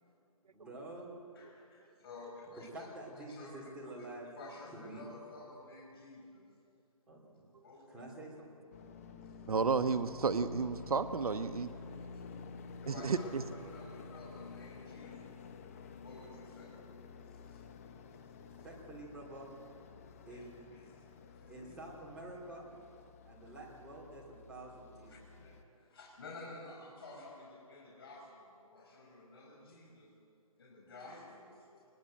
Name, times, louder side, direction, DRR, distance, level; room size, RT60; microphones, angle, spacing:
voice 1, 0.4-1.1 2.5-4.3 4.7-5.1 7.1-7.5 7.9-8.7 18.4-19.5 20.3-20.7 21.5-22.7 23.3-25.5, right 2 dB, 5° right, -5 dB, 3.1 m, -48 dB
voice 2, 1.4-2.7 3.3-4.0 4.4-6.4 7.6-7.8 11.7-12.2 12.8-15.4 16.0-16.7 20.2-21.8 23.4-23.5 25.1-30.1 30.6-31.8, left 2 dB, 40° left, -1 dB, 5.2 m, -52 dB
sound 1, 8.7-25.6, left 5 dB, 25° left, 1.0 m, -51 dB
voice 3, 9.5-11.7 12.9-13.4, right 5 dB, 80° right, 9 dB, 1.0 m, -32 dB
23.0 x 21.0 x 7.7 m, 2.5 s
hypercardioid pair, 165°, 19 cm